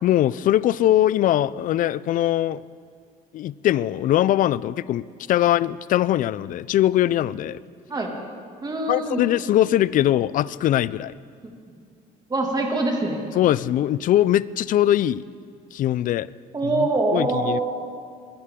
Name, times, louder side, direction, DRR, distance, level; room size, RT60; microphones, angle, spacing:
voice 1, 0.0-2.6 3.3-7.6 8.9-11.1 13.3-15.2 15.7-16.3 16.6-17.6, left 12 dB, 55° left, 20 dB, 0.4 m, -21 dB
voice 2, 8.6-9.2 11.4-11.5 12.3-13.2 16.5-17.6, right 2 dB, 25° right, 1 dB, 2.2 m, -24 dB
21.0 x 11.5 x 3.7 m, 2.2 s
cardioid pair, 110°, 17 cm